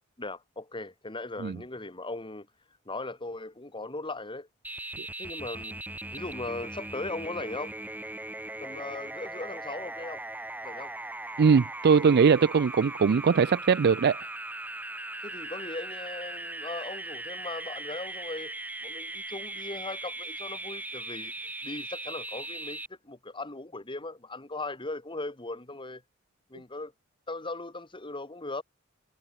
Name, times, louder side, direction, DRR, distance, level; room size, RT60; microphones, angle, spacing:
voice 1, 0.2-2.5 2.9-4.5 5.2-5.8 6.1-7.7 8.6-10.2 10.6-10.9 15.2-18.5 18.8-26.0 26.5-26.9 27.3-28.6, left 2 dB, 25° left, 2.4 m, -38 dB
sound 1, 4.6-22.9, right 2 dB, 10° right, 4.5 m, -39 dB
voice 2, 11.4-14.3, right 6 dB, 50° right, 0.4 m, -21 dB
head